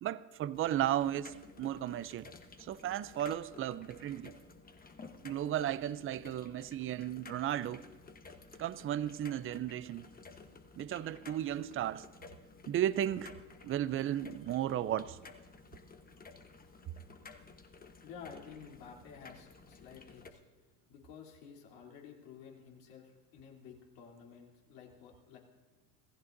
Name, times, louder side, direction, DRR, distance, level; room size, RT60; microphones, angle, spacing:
voice 1, 0.0-2.3 2.6-4.3 5.2-7.8 8.6-10.1 10.8-12.1 12.7-13.3 13.6-15.2, right 11 dB, 30° right, 0.4 m, -34 dB
sound 1, 0.5-20.3, left 4 dB, 20° left, 1.0 m, -54 dB
voice 2, 18.0-20.4 20.9-25.4, left 7 dB, 80° left, 3.2 m, -52 dB
26.5 x 15.0 x 2.6 m
supercardioid pair, 100°, 48 cm